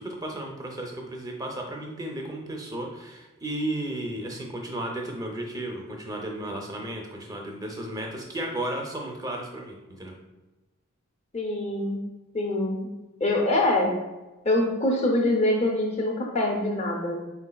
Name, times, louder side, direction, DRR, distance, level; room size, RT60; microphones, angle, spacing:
voice 1, 0.0-10.1, right 1 dB, 15° right, 1 dB, 0.5 m, -34 dB
voice 2, 11.3-12.0 12.3-12.9 13.2-14.0 14.4-17.2, left 1 dB, 30° left, 0 dB, 0.6 m, -24 dB
4.4 x 4.1 x 2.3 m, 1.1 s
head